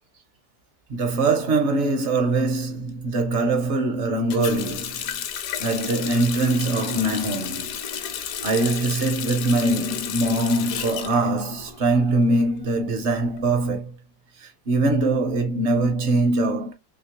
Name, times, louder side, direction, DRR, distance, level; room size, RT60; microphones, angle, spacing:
voice 1, 0.9-5.1 5.6-7.7 8.4-13.9 14.4-16.7, right 2 dB, 55° right, 0.8 m, -22 dB
Water tap faucet, 4.3-12.0 12.4-13.4, left 8 dB, 70° left, 0.9 m, -32 dB
3.0 x 2.9 x 2.8 m
omnidirectional pair, 1.8 m